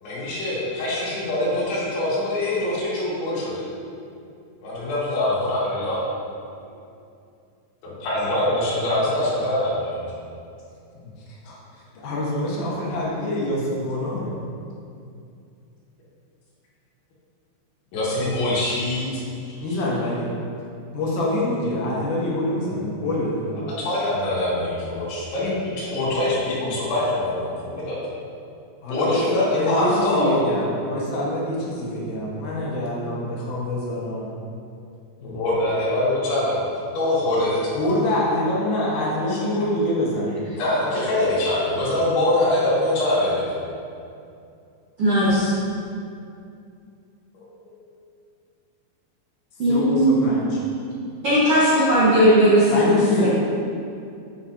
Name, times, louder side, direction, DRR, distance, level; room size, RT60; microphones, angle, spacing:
voice 1, 0.0-3.6 4.6-6.0 7.8-10.1 17.9-19.2 23.8-28.0 28.9-30.3 35.2-37.8 40.6-43.5, left 1 dB, 90° left, -9 dB, 4.6 m, -24 dB
voice 2, 11.9-14.3 19.6-20.3 20.9-23.6 28.8-34.3 37.7-40.4 49.7-50.6 52.7-53.3, left 1 dB, 60° left, -5 dB, 2.4 m, -25 dB
voice 3, 45.0-45.5 49.6-50.3 51.2-53.3, equal, 65° right, -11 dB, 1.4 m, -17 dB
13.0 x 5.9 x 2.8 m, 2.5 s
omnidirectional pair, 5.2 m